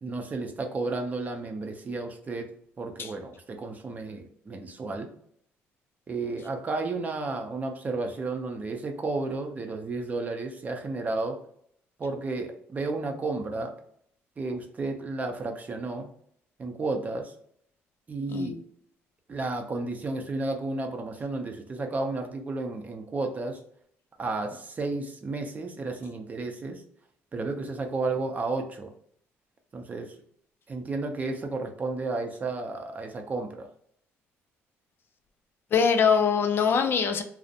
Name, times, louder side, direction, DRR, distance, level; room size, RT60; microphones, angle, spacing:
voice 1, 0.0-2.5 2.8-5.1 6.1-11.4 12.0-13.7 14.4-16.1 16.6-17.3 18.1-18.6 19.3-23.6 24.2-26.8 27.3-28.9 29.7-30.1 30.7-33.7, right 3 dB, 30° right, 4 dB, 0.5 m, -32 dB
voice 2, 18.3-18.6 35.7-37.2, left 6 dB, 45° left, 6 dB, 0.3 m, -23 dB
2.4 x 2.0 x 2.7 m, 0.65 s
cardioid pair, 105°, 5 cm